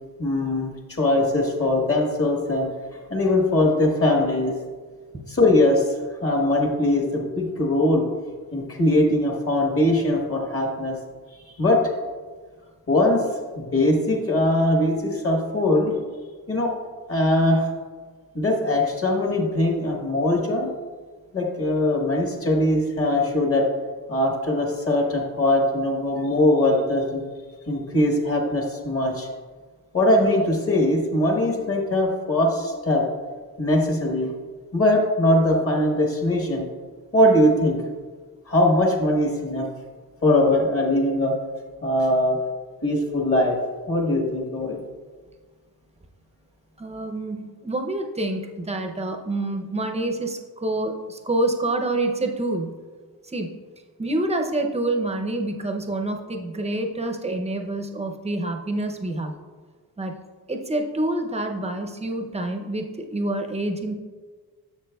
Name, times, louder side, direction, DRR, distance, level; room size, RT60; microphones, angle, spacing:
voice 1, 0.2-2.7 3.1-4.5 5.3-8.0 8.5-11.0 11.3-11.8 12.9-13.2 13.5-15.9 16.5-16.7 17.1-17.7 18.3-20.7 21.3-23.7 24.1-27.2 27.7-29.3 29.9-33.0 33.6-34.3 34.7-36.6 37.1-37.8 38.5-39.7 40.2-41.3 41.8-42.4 42.8-43.6 43.9-44.8, left 1 dB, 35° left, 1 dB, 1.2 m, -21 dB
voice 2, 46.8-52.8 53.2-53.6 54.0-59.3 60.0-60.1 60.5-63.9, right 2 dB, 15° right, 4 dB, 0.6 m, -27 dB
10.5 x 7.1 x 2.3 m, 1.5 s
wide cardioid pair, 155°, 39 cm